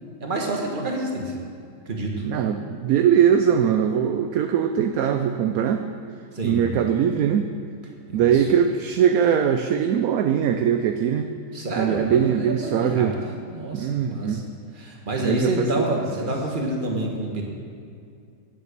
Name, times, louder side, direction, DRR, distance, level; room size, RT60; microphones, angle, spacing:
voice 1, 0.2-1.4 1.8-2.3 6.3-6.7 8.1-8.5 11.5-13.1 13.5-14.4 14.7-17.4, right 1 dB, 30° right, 0 dB, 1.5 m, -28 dB
voice 2, 2.2-5.8 6.4-7.5 8.1-11.3 11.8-13.1 13.7-14.4 15.2-15.7, right 8 dB, 70° right, 6 dB, 0.9 m, -21 dB
9.7 x 7.5 x 6.6 m, 2.4 s
omnidirectional pair, 1.8 m